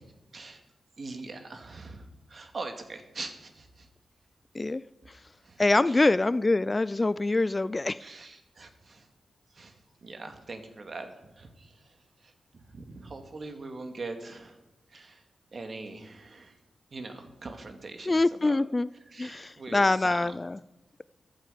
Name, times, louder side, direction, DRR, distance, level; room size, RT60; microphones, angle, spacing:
voice 1, 1.0-3.9 5.4-5.6 5.9-6.0 8.0-9.1 9.5-12.3 12.7-14.6 14.9-15.2 15.5-16.6 16.9-18.6 19.1-20.3, right 3 dB, 50° right, 2.2 m, -42 dB
voice 2, 5.6-8.0 18.1-18.9 19.2-20.6, left 2 dB, 25° left, 0.3 m, -25 dB
14.0 x 13.0 x 5.1 m
cardioid pair, 80°, 0 cm